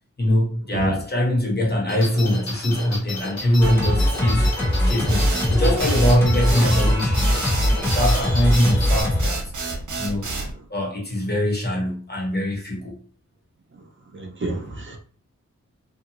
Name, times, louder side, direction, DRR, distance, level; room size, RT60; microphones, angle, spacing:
voice 1, 0.2-4.5 4.8-7.3 7.8-9.4 10.0-10.3 10.7-12.9, equal, 35° left, 1.0 m, -22 dB
sound 1, 1.9-9.0, left 2 dB, 60° left, 1.1 m, -33 dB
Singing, 3.6-9.3, left 1 dB, 10° left, 0.9 m, -21 dB
sound 2, 5.1-10.5, right 3 dB, 85° right, 0.7 m, -29 dB
voice 2, 14.1-15.0, right 2 dB, 45° right, 0.5 m, -28 dB
2.6 x 2.5 x 2.8 m
wide cardioid pair, 75°, 29 cm